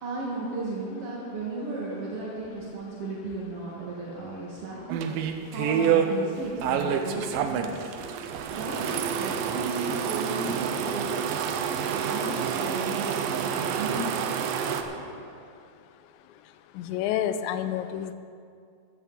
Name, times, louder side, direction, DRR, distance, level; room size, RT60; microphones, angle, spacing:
voice 1, 0.0-4.8 5.2-7.9 8.5-11.1 11.9-14.1, right 3 dB, 50° right, -5 dB, 1.8 m, -35 dB
sound 1, 2.6-3.2 3.5-3.8 4.1-4.3 4.6-4.7 5.1-6.6 7.2-7.4 7.9-8.8 9.2-9.3 9.6-10.3 11.3-12.1 12.5-14.1 14.6-15.4, right 1 dB, 15° right, 4.0 m, -50 dB
sound 2, 4.9-6.1 6.6-14.8, right 7 dB, 85° right, 2.0 m, -28 dB
voice 2, 16.8-18.1, left 10 dB, 85° left, 11 dB, 2.9 m, -29 dB
15.0 x 14.0 x 4.1 m, 2.4 s
omnidirectional pair, 5.1 m